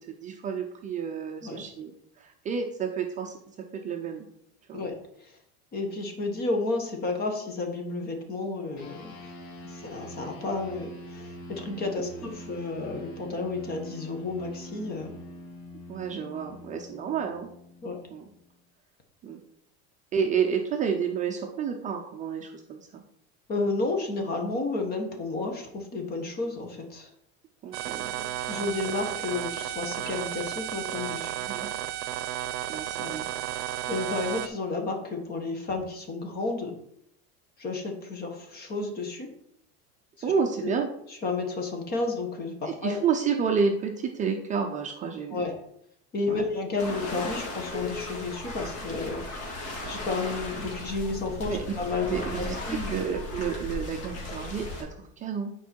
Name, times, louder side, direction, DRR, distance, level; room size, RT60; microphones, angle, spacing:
voice 1, 0.1-4.3 4.7-4.8 12.0-12.3 15.9-17.5 18.1-18.3 19.2-19.4 20.1-23.0 27.6-28.3 31.4-31.7 32.7-33.3 40.2-40.9 42.6-45.5 46.3-46.4 51.5-51.7 52.1-55.5, right 6 dB, 25° right, 2 dB, 0.6 m, -30 dB
voice 2, 5.7-9.2 9.7-15.2 17.8-18.0 23.5-27.1 28.5-31.4 33.0-33.1 33.9-36.7 37.6-39.3 40.6-40.7 41.2-43.0 45.3-45.6 46.1-49.2 49.9-52.9, left 3 dB, 30° left, 4 dB, 1.5 m, -31 dB
sound 1, 8.8-18.5, left 1 dB, 70° left, 2.9 m, -44 dB
sound 2, 27.7-34.5, right 13 dB, 70° right, 0.7 m, -33 dB
sound 3, 46.8-54.8, left 2 dB, 50° left, 2.3 m, -36 dB
9.8 x 4.7 x 4.5 m, 0.73 s
cardioid pair, 160°, 32 cm